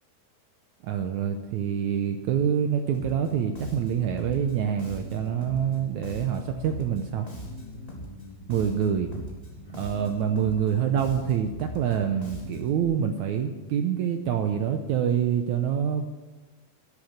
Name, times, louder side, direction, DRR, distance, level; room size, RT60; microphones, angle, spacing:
voice 1, 0.8-7.3 8.5-9.1 9.7-16.1, right 8 dB, 80° right, 5 dB, 1.7 m, -26 dB
Bass guitar, 2.9-12.8, left 1 dB, 10° left, 2.5 m, -41 dB
12.5 x 12.0 x 6.5 m, 1.2 s
omnidirectional pair, 4.3 m